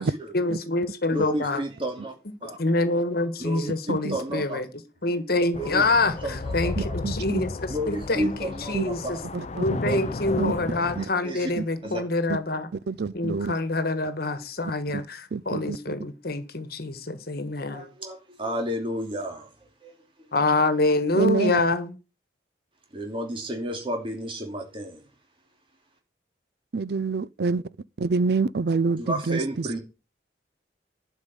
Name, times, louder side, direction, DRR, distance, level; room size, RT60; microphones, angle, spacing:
voice 1, 0.3-1.6 2.4-4.7 5.0-6.8 7.0-9.2 9.6-12.7 13.1-17.9 20.3-21.9, left 2 dB, 60° left, 1.4 m, -26 dB
voice 2, 1.1-2.1 2.4-2.6 3.4-3.7 4.1-4.6 5.6-5.8 6.2-7.0 7.7-9.2 9.8-10.0 11.2-11.5 11.8-12.0 17.6-19.5 19.8-19.9 20.2-20.3 22.9-25.0 29.0-29.8, equal, 30° right, 2.6 m, -31 dB
sound 1, 5.5-11.1, left 3 dB, 40° left, 0.6 m, -33 dB
voice 3, 6.8-7.5 8.7-8.9 9.3-9.8 10.4-10.5 10.9-11.0 11.6-11.7 12.3-12.4 12.9-13.5 14.9-15.0 15.3-15.9 21.1-21.6 26.7-27.6 28.0-29.8, right 4 dB, 65° right, 0.5 m, -27 dB
sound 2, 9.8-15.1, right 1 dB, 10° right, 4.7 m, -59 dB
11.5 x 5.4 x 8.1 m
head